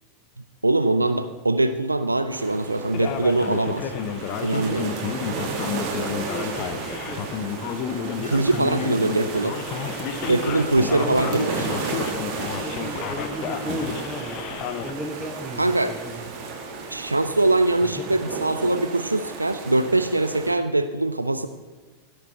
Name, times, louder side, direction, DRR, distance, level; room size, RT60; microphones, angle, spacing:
voice 1, 0.6-3.9 4.4-4.9 8.2-9.6 10.3-11.7 15.6-15.9 16.9-21.5, right 2 dB, 85° right, 10 dB, 0.5 m, -22 dB
sound 1, 2.3-20.5, right 4 dB, 40° right, 2.1 m, -33 dB
Male speech man speaking, 2.9-14.9, left 8 dB, 40° left, 0.9 m, -31 dB
voice 2, 5.4-7.5 8.2-9.0 10.1-11.6 12.2-14.4 14.8-16.2 17.8-18.1, equal, ahead, 1 dB, 1.0 m, -36 dB
16.5 x 6.7 x 4.5 m, 1.3 s
figure-of-eight pair, 90°, 0 cm